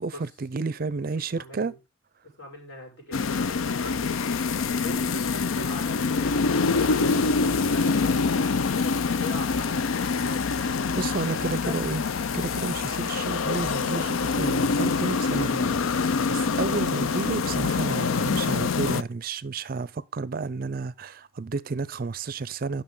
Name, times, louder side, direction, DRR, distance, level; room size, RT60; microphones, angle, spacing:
voice 1, 0.0-1.7 10.9-12.0 12.3-22.8, right 4 dB, 45° right, 0.5 m, -31 dB
voice 2, 1.1-1.8 2.4-4.4 4.8-10.9 11.3-11.9, left 1 dB, 70° left, 6.3 m, -40 dB
sound 1, 3.1-19.0, left 4 dB, 85° left, 0.5 m, -25 dB
11.0 x 6.5 x 3.8 m
head